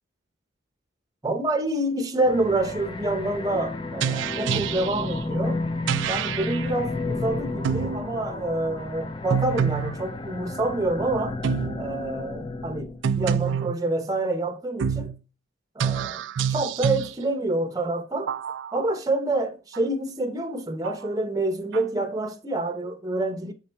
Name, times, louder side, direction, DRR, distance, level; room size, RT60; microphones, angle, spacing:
voice 1, 1.2-5.6 6.1-11.4 11.8-15.1 15.8-16.2 16.5-18.3 18.7-23.5, right 2 dB, 20° right, 0.7 m, -27 dB
sound 1, 2.2-13.0, left 2 dB, 25° left, 0.4 m, -32 dB
sound 2, 4.0-5.1 5.9-6.7 7.6-8.1 9.3-10.0 11.4-11.8 13.0-13.8 14.8-15.2 15.8-17.1 18.3-18.9 19.7-19.8 20.8-21.1 21.7-21.8, right 7 dB, 65° right, 0.3 m, -27 dB
7.1 x 4.4 x 4.3 m
head